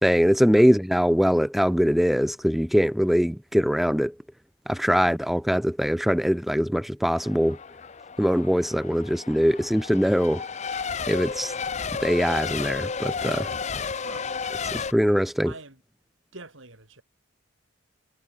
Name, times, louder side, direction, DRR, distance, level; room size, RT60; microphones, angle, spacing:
voice 1, 0.0-4.1 4.7-7.6 8.2-10.4 11.1-11.5 12.0-13.5 14.7-15.5, equal, ahead, 1.2 m, -22 dB
Race car auto racing / Accelerating revving vroom / Mechanisms, 7.1-14.9, left 5 dB, 35° left, 0.7 m, -32 dB
voice 2, 13.9-14.3 15.4-15.8 16.3-17.0, right 3 dB, 70° right, 5.6 m, -45 dB
head